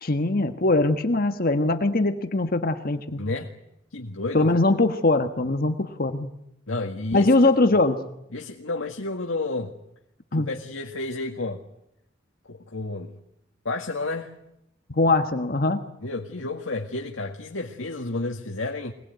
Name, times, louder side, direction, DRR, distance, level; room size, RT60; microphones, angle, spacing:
voice 1, 0.0-3.2 4.3-6.3 7.1-8.0 10.3-10.5 14.9-15.8, left 2 dB, 50° left, 8 dB, 1.4 m, -21 dB
voice 2, 3.2-3.5 3.9-4.5 6.7-7.3 8.3-9.7 10.3-11.6 12.5-13.1 13.7-14.3 16.0-18.9, left 2 dB, 90° left, 3 dB, 1.9 m, -31 dB
25.0 x 19.5 x 9.4 m, 0.82 s
head